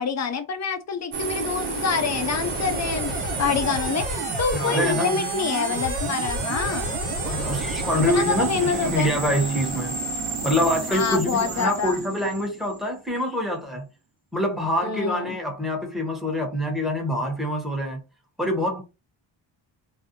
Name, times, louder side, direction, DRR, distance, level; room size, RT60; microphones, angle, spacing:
voice 1, 0.0-3.1 3.4-4.1 4.4-7.0 8.1-9.1 10.9-12.0 14.8-15.4, left 5 dB, 35° left, 0.5 m, -26 dB
sound 1, 1.1-13.1, right 3 dB, 75° right, 1.1 m, -29 dB
voice 2, 4.5-5.2 7.2-10.0 10.4-13.9 14.3-18.0 18.4-18.8, left 1 dB, ahead, 1.0 m, -25 dB
2.5 x 2.0 x 2.8 m
cardioid pair, 75°, 47 cm